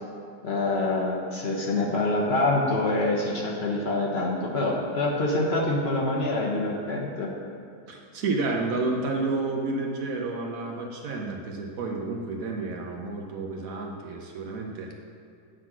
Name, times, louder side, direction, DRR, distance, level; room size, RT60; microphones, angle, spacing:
voice 1, 0.4-7.3, left 2 dB, 45° left, -2 dB, 0.9 m, -26 dB
voice 2, 7.9-14.9, right 3 dB, 60° right, 1 dB, 1.0 m, -30 dB
9.0 x 4.0 x 6.0 m, 2.4 s
omnidirectional pair, 1.9 m